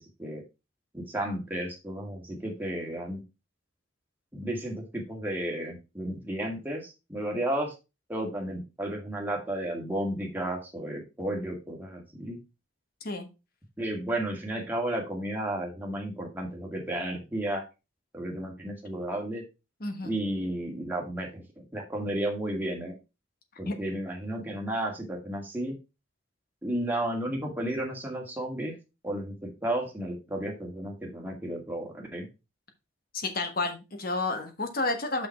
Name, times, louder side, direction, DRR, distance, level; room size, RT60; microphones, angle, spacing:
voice 1, 0.9-3.2 4.3-7.7 8.1-12.4 13.8-17.6 18.1-19.4 20.0-22.9 23.6-25.7 26.6-28.8 29.0-32.3, right 1 dB, 10° right, 0 dB, 1.9 m, -33 dB
voice 2, 19.8-20.2 23.7-23.8 33.1-35.3, left 3 dB, 45° left, 7 dB, 1.3 m, -31 dB
5.9 x 5.6 x 4.3 m, 0.26 s
head